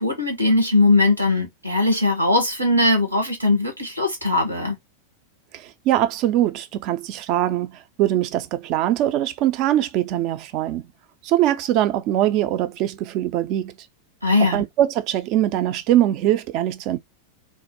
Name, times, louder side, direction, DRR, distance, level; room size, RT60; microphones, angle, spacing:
voice 1, 0.0-4.7 14.2-14.6, left 2 dB, 85° right, 0.8 m, -20 dB
voice 2, 5.5-10.9 11.2-13.7 14.4-17.0, right 13 dB, 40° right, 0.3 m, -22 dB
2.2 x 2.0 x 2.6 m
figure-of-eight pair, 90°, 0 cm